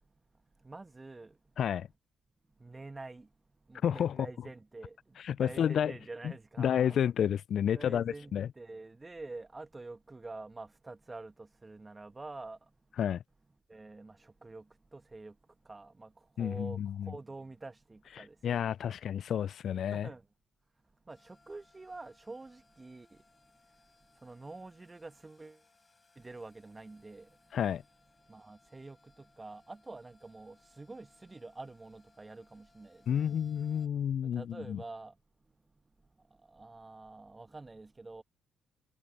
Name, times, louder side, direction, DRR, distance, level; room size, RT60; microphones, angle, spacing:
voice 1, 0.6-1.4 2.6-3.3 3.7-7.0 7.7-12.7 13.7-18.7 19.9-20.3 21.1-23.2 24.1-25.6 26.2-27.4 28.3-33.3 34.2-35.2 36.2-38.2, right 3 dB, 25° right, 2.0 m, -47 dB
voice 2, 1.6-1.9 3.8-4.3 5.2-6.0 6.2-6.3 6.6-8.5 13.0-13.2 16.4-17.1 18.2-20.1 27.5-27.8 33.1-34.8, left 9 dB, 60° left, 0.3 m, -30 dB
sound 1, 21.1-33.9, left 3 dB, 30° left, 6.9 m, -67 dB
hypercardioid pair, 50°, 0 cm